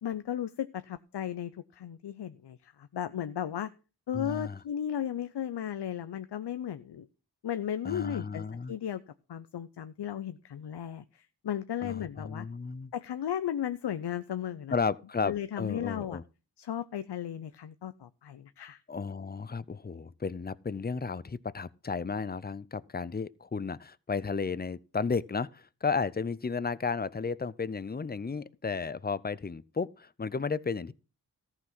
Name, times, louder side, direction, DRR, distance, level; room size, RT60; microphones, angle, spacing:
voice 1, 0.0-3.7 4.1-7.1 7.4-9.0 9.3-12.5 12.9-14.8 15.2-16.2 16.6-18.8, left 10 dB, 80° left, 0.6 m, -35 dB
voice 2, 4.1-4.6 7.8-8.7 11.8-12.9 14.7-16.2 18.9-30.9, left 5 dB, 25° left, 0.5 m, -33 dB
14.0 x 5.9 x 5.9 m
wide cardioid pair, 55°, 40 cm